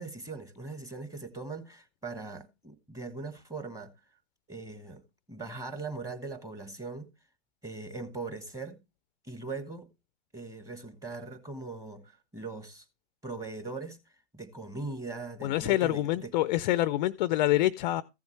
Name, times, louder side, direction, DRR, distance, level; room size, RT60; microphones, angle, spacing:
voice 1, 0.0-3.9 4.5-5.0 5.3-7.1 7.6-8.8 9.2-9.9 10.3-12.8 13.2-14.0 14.3-16.3, right 3 dB, 10° right, 1.2 m, -40 dB
voice 2, 15.4-18.0, left 15 dB, 40° left, 0.4 m, -26 dB
14.5 x 7.2 x 3.2 m
hypercardioid pair, 120°, 34 cm